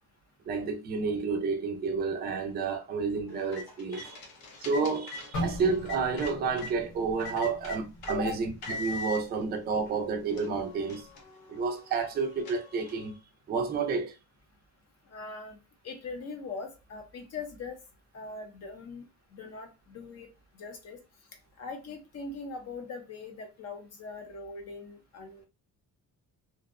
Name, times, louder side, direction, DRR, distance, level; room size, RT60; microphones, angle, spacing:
voice 1, 0.5-4.2 4.6-11.1 11.5-13.1 13.5-14.1, right 4 dB, 30° right, 0.4 m, -30 dB
sound 1, 3.3-6.7 7.2-8.2 8.6-9.2 9.9-10.0 10.3-13.1, left 3 dB, 90° left, 0.7 m, -42 dB
sound 2, 5.3-9.4 9.7-10.0 10.6-11.0, equal, 65° left, 1.0 m, -40 dB
voice 2, 15.1-15.6 15.8-17.8 18.1-20.3 20.5-21.0 21.6-25.5, left 4 dB, 45° left, 0.6 m, -41 dB
2.6 x 2.0 x 2.4 m
cardioid pair, 165°, 35 cm